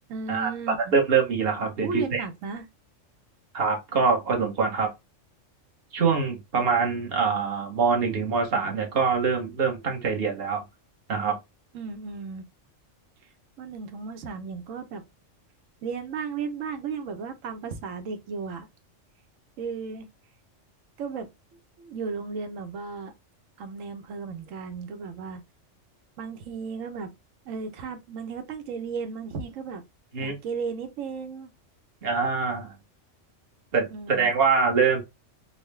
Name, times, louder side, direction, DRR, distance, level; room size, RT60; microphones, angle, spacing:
voice 1, 0.1-1.0 1.8-2.6 11.7-12.5 13.6-15.0 15.8-18.7 19.6-20.1 21.0-21.3 21.8-23.1 23.6-25.4 26.2-27.1 27.5-29.8 30.2-31.5 33.9-34.3, right 5 dB, 90° right, 1.1 m, -35 dB
voice 2, 0.9-2.2 3.5-4.9 5.9-10.6 11.1-11.4 30.1-30.4 32.0-32.7 33.7-35.0, right 5 dB, 50° right, 1.2 m, -24 dB
3.9 x 2.1 x 3.1 m
omnidirectional pair, 1.3 m